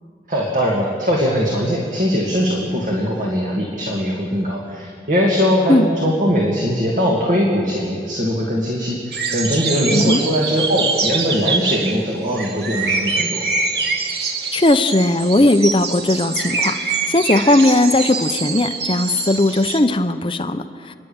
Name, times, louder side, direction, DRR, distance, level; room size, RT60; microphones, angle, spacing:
voice 1, 0.3-13.4, equal, 45° right, -2 dB, 2.5 m, -20 dB
sound 1, 9.1-19.8, right 4 dB, 65° right, 1.8 m, -24 dB
voice 2, 9.9-10.2 14.5-20.9, left 2 dB, 30° left, 8 dB, 0.7 m, -17 dB
29.5 x 11.0 x 8.9 m, 2.3 s
head